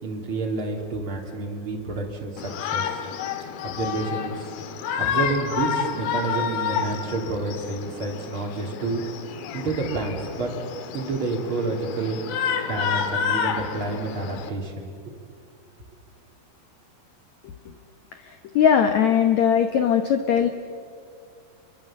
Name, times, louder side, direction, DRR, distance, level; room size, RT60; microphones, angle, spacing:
voice 1, 0.0-3.0 3.6-4.5 5.0-9.0 9.5-10.5 10.9-12.2 12.6-15.1, right 3 dB, 30° right, 0 dB, 3.6 m, -29 dB
Shout, 2.4-14.5, left 7 dB, 70° left, 2.9 m, -29 dB
voice 2, 18.2-20.5, left 8 dB, 90° left, 7 dB, 1.5 m, -20 dB
27.5 x 23.5 x 7.6 m, 2.2 s
omnidirectional pair, 4.9 m